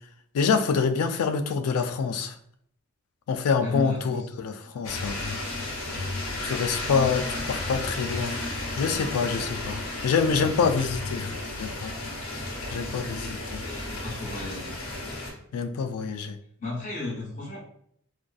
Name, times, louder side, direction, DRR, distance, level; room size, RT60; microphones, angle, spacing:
voice 1, 0.3-2.3 3.3-5.4 6.4-11.9 12.7-13.6 15.5-16.4, left 5 dB, 85° left, 9 dB, 0.3 m, -26 dB
voice 2, 3.6-4.3 4.6-4.7 5.5-5.7 12.7-14.7 16.6-17.6, left 3 dB, 35° left, -4 dB, 0.7 m, -36 dB
sound 1, 4.8-15.3, left 2 dB, 70° left, 0.8 m, -33 dB
2.5 x 2.3 x 2.3 m, 0.68 s
head